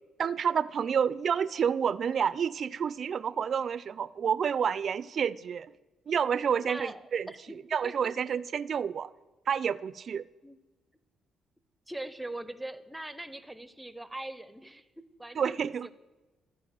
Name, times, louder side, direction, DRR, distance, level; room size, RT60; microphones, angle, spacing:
voice 1, 0.2-5.7 6.1-7.3 7.7-9.1 9.5-10.3 15.4-15.9, right 7 dB, 55° right, 0.4 m, -29 dB
voice 2, 6.6-8.1 10.4-10.6 11.9-15.9, right 1 dB, 10° right, 0.6 m, -42 dB
13.5 x 4.7 x 7.6 m
cardioid pair, 90°, 0 cm